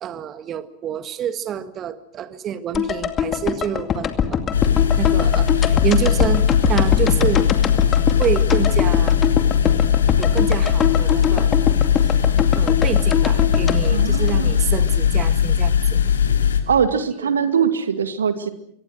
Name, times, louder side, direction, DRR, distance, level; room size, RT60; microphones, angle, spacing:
voice 1, 0.0-4.4 5.0-7.5 8.2-9.2 10.2-11.5 12.0-12.2 12.6-16.0 16.3-16.5, right 9 dB, 30° right, 12 dB, 1.8 m, -27 dB
sound 1, 2.7-14.9 15.2-15.3, left 8 dB, 25° left, 2.3 m, -23 dB
sound 2, 4.5-16.6, left 8 dB, 65° left, 2.9 m, -18 dB
voice 2, 13.9-14.6 16.7-18.5, right 7 dB, 70° right, 10 dB, 2.2 m, -21 dB
27.5 x 24.5 x 6.3 m, 0.71 s
figure-of-eight pair, 90°, 0 cm